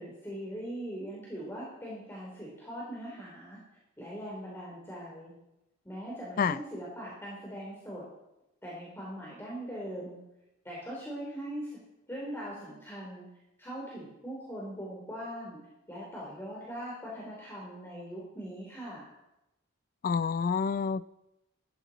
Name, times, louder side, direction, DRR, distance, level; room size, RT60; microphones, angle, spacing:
voice 1, 0.0-3.6 4.0-5.3 5.8-8.0 8.6-10.2 10.6-11.8 12.1-13.3 13.6-15.6 15.9-19.1, equal, 10° left, 3.3 m, -41 dB
voice 2, 20.0-21.0, left 6 dB, 45° left, 0.3 m, -28 dB
15.0 x 13.0 x 4.1 m
head